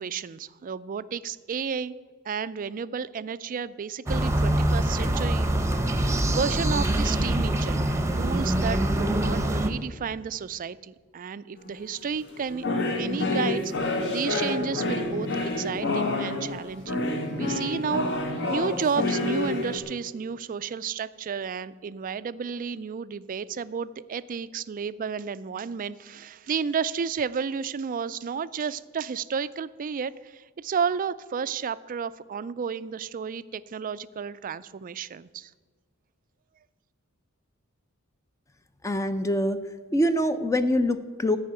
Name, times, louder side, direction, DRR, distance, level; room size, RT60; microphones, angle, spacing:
voice 1, 0.0-1.9 2.3-5.5 6.3-7.8 8.2-12.6 13.0-17.0 17.3-35.5, right 6 dB, 40° right, 16 dB, 0.4 m, -32 dB
sound 1, 4.1-9.7, right 1 dB, 15° right, 0.8 m, -24 dB
sound 2, 11.6-11.9 12.3-19.8, left 2 dB, 55° left, 1.4 m, -28 dB
voice 2, 38.8-39.6 39.9-41.4, equal, 15° left, 9 dB, 0.5 m, -24 dB
14.0 x 5.6 x 8.9 m, 1.5 s
head